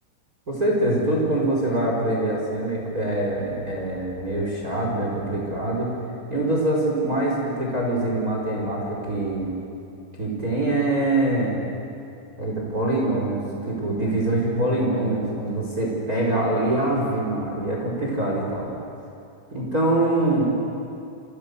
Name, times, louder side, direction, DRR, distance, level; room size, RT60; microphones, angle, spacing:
voice 1, 0.5-5.9 6.3-9.5 10.2-11.6 12.4-18.7 19.5-20.5, right 2 dB, 20° right, -2 dB, 4.8 m, -24 dB
29.5 x 25.5 x 6.9 m, 2.6 s
omnidirectional pair, 5.5 m